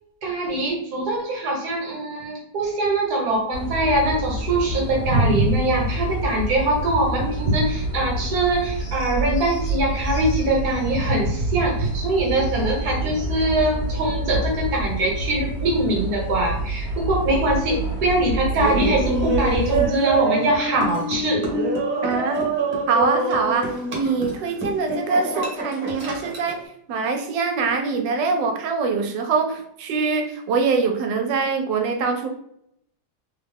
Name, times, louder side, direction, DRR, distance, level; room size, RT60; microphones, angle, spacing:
voice 1, 0.2-21.5 21.8-21.9, right 1 dB, 60° right, -1 dB, 1.3 m, -22 dB
sound 1, 3.5-19.9, right 1 dB, 45° left, 1.2 m, -28 dB
Laughter, 18.5-26.6, right 3 dB, 45° right, 1.1 m, -26 dB
voice 2, 22.0-22.4 22.7-26.6 26.9-32.3, right 4 dB, 80° right, 5 dB, 1.3 m, -23 dB
3.3 x 2.3 x 3.4 m, 0.73 s
omnidirectional pair, 1.9 m